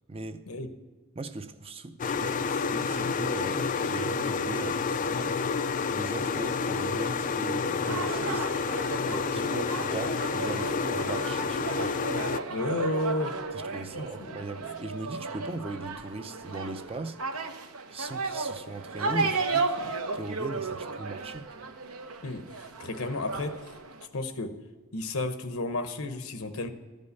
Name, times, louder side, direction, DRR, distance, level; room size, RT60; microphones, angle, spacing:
voice 1, 0.1-0.4 1.1-5.4 5.9-8.5 9.0-12.0 13.5-17.2 17.9-21.5, right 2 dB, 25° right, 0.5 m, -39 dB
sound 1, 2.0-12.4, left 5 dB, 35° left, 0.4 m, -29 dB
sound 2, 7.9-24.1, right 3 dB, 80° right, 1.0 m, -34 dB
voice 2, 12.5-13.4 13.9-14.4 22.2-22.4 22.8-23.7 24.1-24.6 24.9-26.7, left 2 dB, 75° left, 1.0 m, -32 dB
14.0 x 5.4 x 8.1 m
head